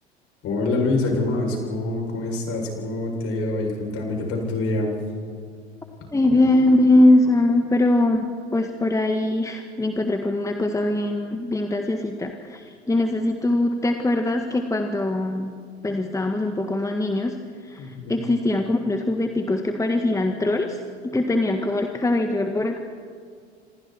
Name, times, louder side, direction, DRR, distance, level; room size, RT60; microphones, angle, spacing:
voice 1, 0.4-4.9 17.8-18.2, left 2 dB, 45° left, 1 dB, 7.8 m, -25 dB
voice 2, 6.1-15.5 15.8-17.3 17.6-20.8 21.0-22.8, left 2 dB, 10° left, 5 dB, 1.7 m, -22 dB
27.5 x 26.5 x 4.6 m, 2.1 s
figure-of-eight pair, 80°, 33 cm